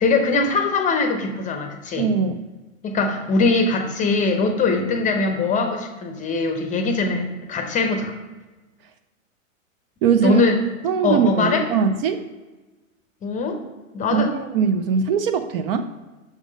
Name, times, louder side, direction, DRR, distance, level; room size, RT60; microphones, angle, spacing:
voice 1, 0.0-2.1 2.8-8.1 10.2-10.6 11.0-11.7 13.2-13.6 13.9-14.3, left 3 dB, 20° left, 5 dB, 0.6 m, -21 dB
voice 2, 2.0-2.4 10.0-10.4 10.8-12.2 14.1-15.9, right 6 dB, 45° right, 8 dB, 0.5 m, -21 dB
6.2 x 3.7 x 5.0 m, 1.2 s
hypercardioid pair, 115°, 41 cm